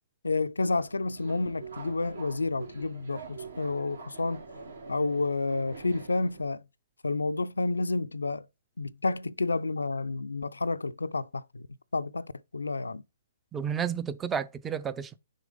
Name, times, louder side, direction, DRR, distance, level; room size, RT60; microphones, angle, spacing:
voice 1, 0.2-4.4 4.9-6.6 7.0-8.5 8.8-11.7 11.9-13.0, left 3 dB, 80° left, 0.3 m, -30 dB
Subway metro underground, 0.8-6.4, right 4 dB, 70° right, 2.2 m, -45 dB
voice 2, 13.5-15.2, right 7 dB, 15° right, 0.4 m, -31 dB
6.4 x 3.5 x 5.1 m
figure-of-eight pair, 130°, 0 cm